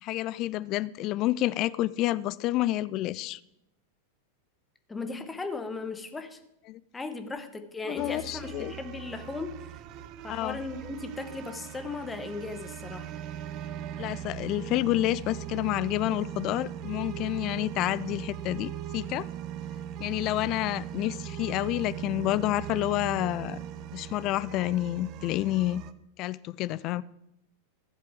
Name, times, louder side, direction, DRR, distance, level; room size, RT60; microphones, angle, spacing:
voice 1, 0.0-3.4 6.7-6.8 7.9-8.7 10.3-10.6 14.0-19.3 20.0-23.6 23.9-25.8 26.2-27.0, left 16 dB, 40° left, 19 dB, 0.4 m, -29 dB
voice 2, 4.9-6.4 6.9-9.7 10.2-13.1, left 3 dB, 10° left, 8 dB, 1.1 m, -37 dB
sound 1, 8.0-25.9, right 11 dB, 40° right, 0.6 m, -39 dB
14.5 x 7.6 x 4.7 m, 0.81 s
figure-of-eight pair, 90°, 0 cm